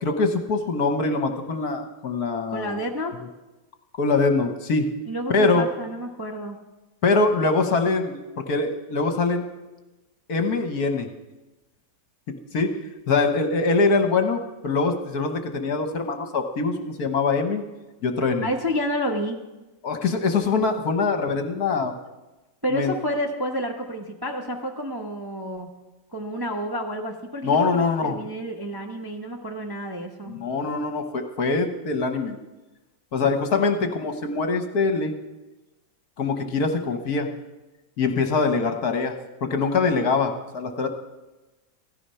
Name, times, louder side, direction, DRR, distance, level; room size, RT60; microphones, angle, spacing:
voice 1, 0.0-2.8 4.0-4.9 5.3-5.7 7.0-9.5 10.3-11.1 12.5-12.7 13.1-17.6 18.0-18.5 19.8-21.9 22.7-22.9 27.4-28.1 30.3-32.4 33.1-35.1 36.2-37.3 38.0-39.1 39.4-40.9, left 4 dB, 55° left, 6 dB, 1.5 m, -23 dB
voice 2, 2.5-3.1 5.1-6.6 18.4-19.4 22.6-25.7 26.1-30.4, equal, 15° right, 1 dB, 0.9 m, -30 dB
16.0 x 13.5 x 5.6 m, 1.1 s
omnidirectional pair, 2.1 m